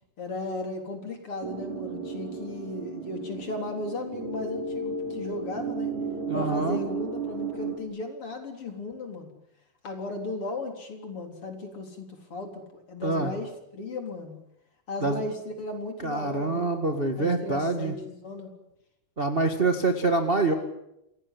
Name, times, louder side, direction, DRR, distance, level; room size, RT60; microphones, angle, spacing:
voice 1, 0.2-5.9 6.3-9.3 9.8-14.4 14.9-16.8 17.2-18.5, left 2 dB, 35° left, 5 dB, 4.2 m, -36 dB
sound 1, 1.4-7.8, right 4 dB, 50° right, 6.8 m, -34 dB
voice 2, 6.3-6.8 13.0-13.3 15.0-15.2 16.0-17.9 19.2-20.5, right 3 dB, 30° right, 5 dB, 1.0 m, -25 dB
27.5 x 17.5 x 10.0 m, 0.84 s
omnidirectional pair, 4.5 m